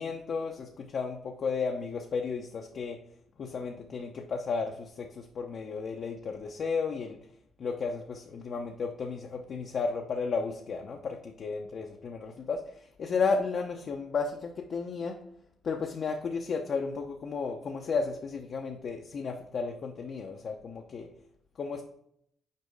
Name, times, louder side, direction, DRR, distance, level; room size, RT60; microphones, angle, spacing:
voice 1, 0.0-3.0 3.4-7.2 7.6-15.2 15.6-21.1 21.6-21.8, left 5 dB, 55° left, 2 dB, 0.7 m, -33 dB
6.6 x 4.4 x 3.5 m, 0.70 s
cardioid pair, 90°, 0 cm